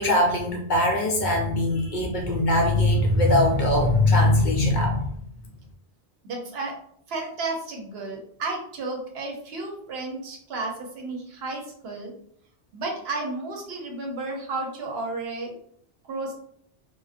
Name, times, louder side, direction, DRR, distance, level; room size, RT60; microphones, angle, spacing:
voice 1, 0.0-5.1, left 1 dB, 55° left, 0 dB, 0.6 m, -21 dB
voice 2, 6.2-6.8 7.1-12.1 12.7-15.5 16.1-16.3, right 3 dB, 75° right, 1 dB, 0.9 m, -32 dB
2.4 x 2.2 x 2.4 m, 0.68 s
omnidirectional pair, 1.1 m